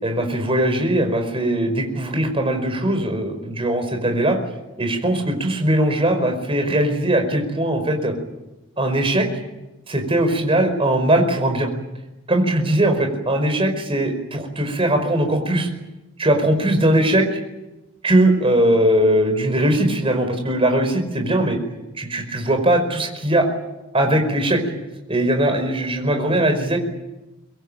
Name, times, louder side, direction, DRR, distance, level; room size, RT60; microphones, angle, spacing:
voice 1, 0.0-4.4 4.8-8.1 8.8-9.3 9.9-11.7 12.3-15.7 16.2-17.3 18.0-21.6 22.0-23.5 23.9-24.6 25.1-26.8, right 1 dB, 25° right, 5 dB, 5.0 m, -20 dB
24.5 x 22.0 x 9.0 m, 1.0 s
head